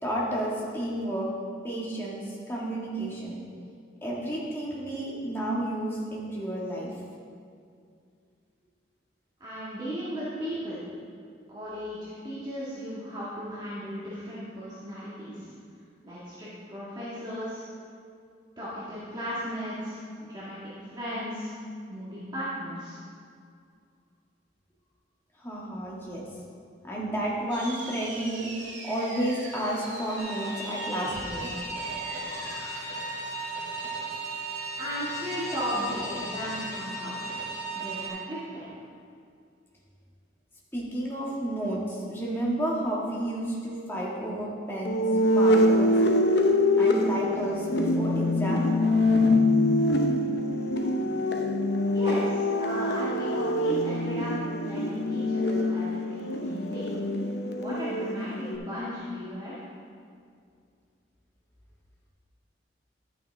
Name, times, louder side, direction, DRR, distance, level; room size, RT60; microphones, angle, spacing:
voice 1, 0.0-1.3 1.6-3.4 4.0-6.9 25.4-26.2 26.8-28.5 28.8-31.5 40.7-45.9 46.8-48.7, right 1 dB, 15° left, -5 dB, 1.8 m, -31 dB
voice 2, 9.4-10.8 11.5-15.5 16.0-17.7 18.6-21.5 21.9-23.0 34.8-37.2 37.7-38.6 51.9-56.8 57.5-59.6, equal, 25° right, -11 dB, 1.9 m, -36 dB
sound 1, 27.5-36.0, right 2 dB, 85° right, 2.0 m, -43 dB
sound 2, 30.2-38.1, right 2 dB, 60° right, 2.1 m, -36 dB
sound 3, 44.8-58.6, left 1 dB, 65° left, 0.8 m, -24 dB
11.5 x 8.9 x 3.5 m, 2.3 s
head